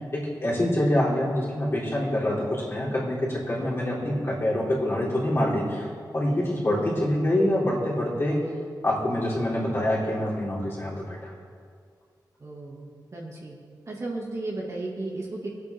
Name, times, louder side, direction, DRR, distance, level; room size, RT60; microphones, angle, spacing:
voice 1, 0.1-5.9 6.1-8.4 8.8-11.3, left 1 dB, 35° left, -7 dB, 4.0 m, -25 dB
voice 2, 6.9-7.3 12.4-13.6 13.9-15.5, right 2 dB, 40° right, -3 dB, 2.1 m, -35 dB
24.0 x 8.3 x 3.7 m, 2.2 s
wide cardioid pair, 140°, 8 cm